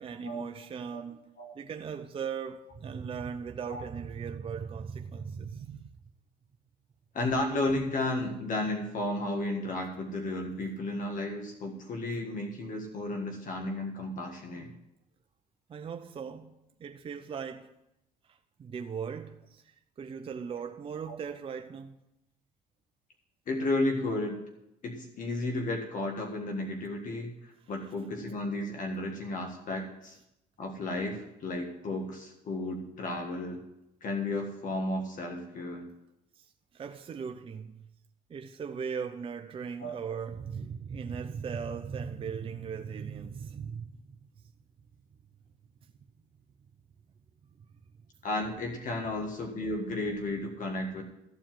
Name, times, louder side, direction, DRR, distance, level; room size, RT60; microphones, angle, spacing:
voice 1, 0.0-5.9 15.7-17.7 18.3-22.0 36.4-37.8 38.3-44.2, right 6 dB, 35° right, 0.6 m, -38 dB
voice 2, 7.1-14.7 21.1-21.2 23.5-24.4 24.8-30.2 30.6-33.6 34.0-35.9 39.8-39.9 48.2-51.0, left 2 dB, 50° left, 1.6 m, -33 dB
14.0 x 4.7 x 7.5 m
cardioid pair, 110°, 17 cm